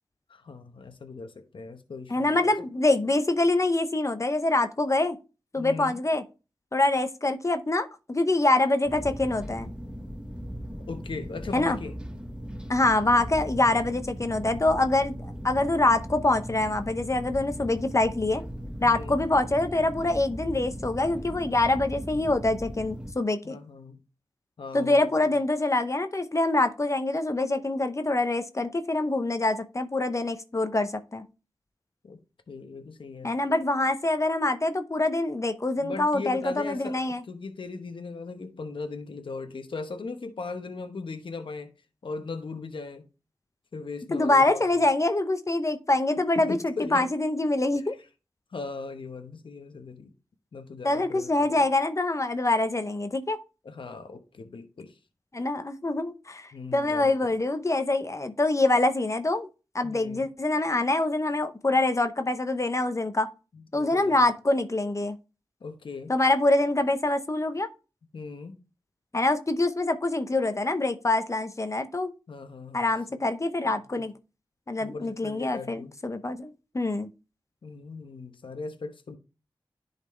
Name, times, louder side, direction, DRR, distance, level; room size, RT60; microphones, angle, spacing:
voice 1, 0.3-2.5 5.6-6.0 10.9-11.9 18.8-19.2 23.4-24.0 24.6-25.3 32.0-32.2 32.5-33.3 35.8-41.7 42.0-43.1 43.7-44.6 46.3-47.1 48.5-50.1 50.5-51.6 53.6-54.9 56.5-57.4 59.8-60.3 63.5-64.3 65.6-66.1 68.1-68.5 72.3-73.2 74.8-75.9 77.6-79.2, left 4 dB, 80° left, 0.9 m, -38 dB
voice 2, 2.1-5.2 5.5-6.2 6.7-9.7 11.5-11.8 12.7-15.1 15.4-18.4 18.8-23.6 24.7-31.2 33.2-37.2 44.1-47.9 50.8-53.4 55.3-59.5 59.7-63.3 63.7-65.2 66.1-67.7 69.1-72.1 72.7-74.1 74.7-77.1, left 2 dB, 35° left, 0.7 m, -25 dB
sound 1, 8.9-23.1, equal, 10° right, 1.2 m, -38 dB
10.5 x 4.1 x 3.1 m
cardioid pair, 45°, 9 cm